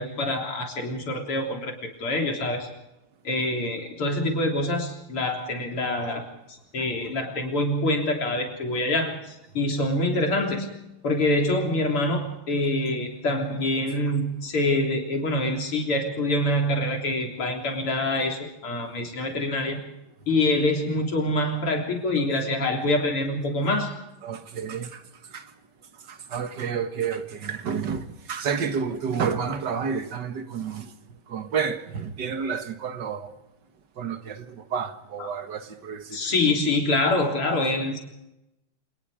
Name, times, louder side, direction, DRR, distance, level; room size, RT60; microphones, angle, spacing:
voice 1, 0.0-1.7 2.0-2.7 3.2-6.2 6.5-10.7 11.0-19.8 20.3-24.0 35.2-35.3 36.1-38.0, left 1 dB, 85° left, 4.5 m, -25 dB
voice 2, 24.2-25.0 25.3-25.5 26.1-30.9 31.3-33.3 34.0-36.2, right 6 dB, 55° right, 2.0 m, -30 dB
27.5 x 19.5 x 5.0 m
omnidirectional pair, 2.4 m